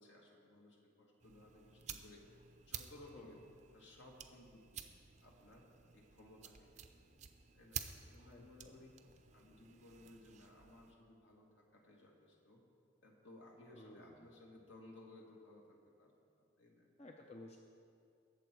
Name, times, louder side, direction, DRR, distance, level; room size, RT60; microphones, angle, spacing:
voice 1, 0.0-2.2 2.6-3.4 3.7-4.9 5.2-5.7 5.9-9.0 9.3-12.6 13.0-16.9, left 2 dB, 65° left, -1 dB, 2.1 m, -60 dB
sound 1, 1.2-10.9, right 8 dB, 35° right, 0.6 m, -52 dB
voice 2, 8.3-8.8 13.7-14.3 17.0-17.6, left 2 dB, 30° left, 1 dB, 0.6 m, -55 dB
20.5 x 7.3 x 4.6 m, 2.4 s
head